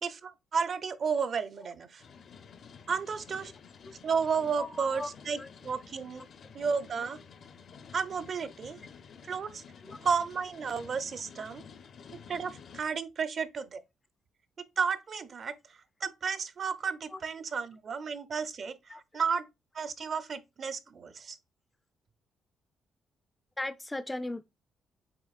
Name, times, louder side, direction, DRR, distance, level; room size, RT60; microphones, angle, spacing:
voice 1, 0.0-2.0 2.9-3.5 4.0-6.3 6.5-7.2 7.9-8.8 9.2-9.6 10.0-11.6 12.3-13.8 14.8-15.5 16.0-19.4 19.7-21.4, right 6 dB, 50° right, 0.5 m, -32 dB
sound 1, 2.0-12.8, left 6 dB, 60° left, 0.5 m, -51 dB
voice 2, 4.6-5.1 5.4-5.5 6.2-6.3 9.8-10.0 17.1-17.2 18.9-19.0 23.6-24.4, left 2 dB, 15° left, 0.3 m, -37 dB
7.3 x 2.6 x 2.4 m
cardioid pair, 90°, 0 cm